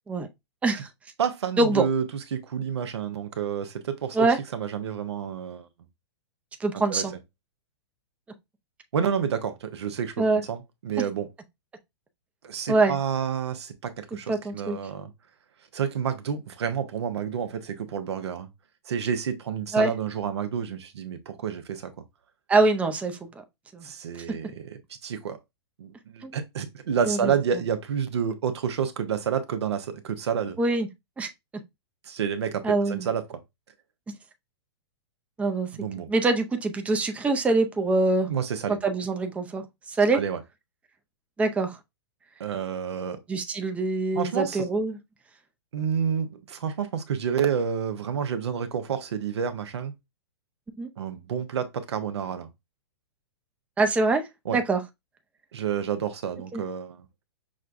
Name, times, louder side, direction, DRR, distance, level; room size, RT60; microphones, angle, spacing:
voice 1, 1.2-2.0 2.3-5.7 6.7-7.0 8.9-11.3 12.4-15.1 15.7-18.5 18.9-21.9 23.8-25.4 25.8-30.6 32.1-33.4 35.7-36.1 38.3-38.8 40.1-40.4 42.4-43.2 44.1-44.7 45.7-49.9 51.0-52.5 54.5-54.6 55.5-57.1, right 7 dB, 70° right, 0.8 m, -29 dB
voice 2, 6.6-7.1 10.2-10.4 12.7-13.0 14.3-14.8 19.7-19.9 22.5-23.2 23.7-23.9 26.2-26.4 27.1-27.3 30.6-30.9 31.2-31.3 32.6-33.1 35.4-35.7 36.1-38.3 38.7-39.6 39.9-40.2 41.4-41.8 43.3-45.0 50.8-50.9 53.8-54.2 54.5-54.8 56.5-56.6, right 3 dB, 10° right, 0.5 m, -24 dB
6.2 x 2.3 x 2.5 m
hypercardioid pair, 115°, 14 cm